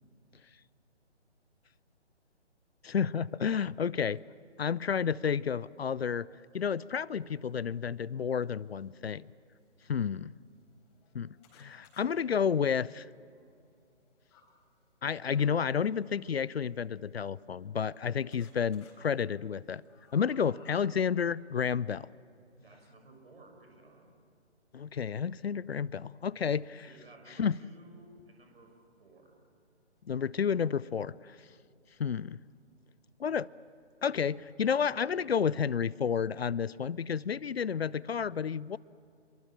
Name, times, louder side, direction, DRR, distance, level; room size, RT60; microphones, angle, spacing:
voice 1, 2.8-4.2 4.6-6.3 6.5-9.3 9.9-10.3 11.1-13.1 15.0-19.8 20.1-22.1 24.7-26.8 27.4-27.6 30.1-31.4 32.0-32.4 33.2-33.5 34.0-38.8, left 7 dB, 65° left, 22 dB, 0.5 m, -31 dB
sound 1, 4.9-5.0 5.5-7.5 8.5-8.9 9.5-9.6 9.9-10.0 10.6-14.5 15.2-15.8 16.8-18.0 18.3-18.9 19.4-20.8, left 5 dB, 25° left, 4.1 m, -64 dB
voice 2, 22.6-24.2 26.8-29.5 32.0-32.2, right 2 dB, 55° right, 3 dB, 6.3 m, -56 dB
28.0 x 22.0 x 7.4 m, 2.4 s
figure-of-eight pair, 145°, 35 cm